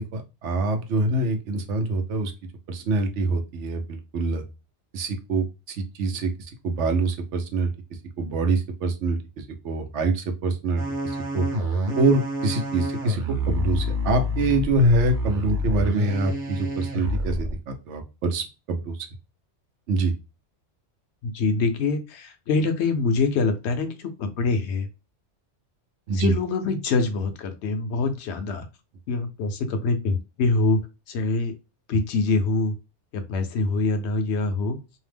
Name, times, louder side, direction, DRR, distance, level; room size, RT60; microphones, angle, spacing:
voice 1, 0.0-2.3 2.7-4.4 4.9-5.5 6.0-6.3 6.6-7.7 8.2-9.2 9.6-11.5 12.0-19.0 19.9-20.1 26.1-26.3, right 2 dB, 85° right, 6 dB, 1.0 m, -25 dB
sound 1, 10.8-17.5, equal, 50° right, 0.8 m, -28 dB
voice 2, 21.2-24.9 26.1-28.7 29.1-30.8 31.1-31.5 31.9-32.7 33.1-34.8, left 3 dB, 75° left, 7 dB, 0.9 m, -24 dB
2.7 x 2.0 x 3.3 m, 0.28 s
omnidirectional pair, 1.2 m